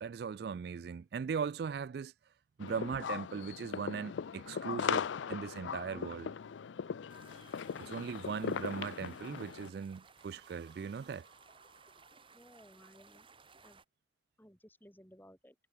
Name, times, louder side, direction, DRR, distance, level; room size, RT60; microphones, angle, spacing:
voice 1, 0.0-2.1 2.6-6.4 7.8-11.3, right 6 dB, 55° right, 0.3 m, -39 dB
sound 1, 2.6-9.7, left 7 dB, 90° left, 0.4 m, -39 dB
sound 2, 6.3-9.6 9.9-12.7, right 3 dB, 75° right, 5.7 m, -65 dB
sound 3, 7.1-13.9, right 4 dB, 30° right, 3.2 m, -60 dB
voice 2, 12.3-13.3 13.6-13.8 14.4-15.6, equal, 10° left, 5.6 m, -58 dB
head